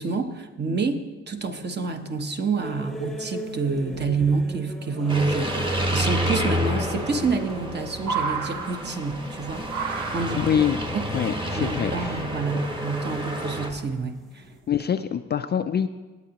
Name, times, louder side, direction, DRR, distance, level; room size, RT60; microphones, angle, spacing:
voice 1, 0.0-9.7 10.1-10.5 10.9-11.1 11.4-14.4, right 4 dB, 35° right, 6 dB, 1.0 m, -28 dB
sound 1, 2.6-14.5, right 1 dB, ahead, 1.0 m, -40 dB
sound 2, 2.7-2.8 3.0-3.4 3.7-4.3 5.9-6.0 6.2-6.3 6.8-6.9 7.2-9.3 9.7-10.8 11.7-12.3 13.0-13.1 13.6-14.0 14.4-14.6, right 5 dB, 70° right, 1.2 m, -33 dB
sound 3, 5.1-13.7, equal, 15° right, 1.4 m, -29 dB
voice 2, 10.4-10.8 11.1-12.2 14.7-15.9, left 8 dB, 35° left, 10 dB, 0.4 m, -25 dB
17.5 x 8.3 x 2.9 m, 1.3 s
cardioid pair, 90°, 30 cm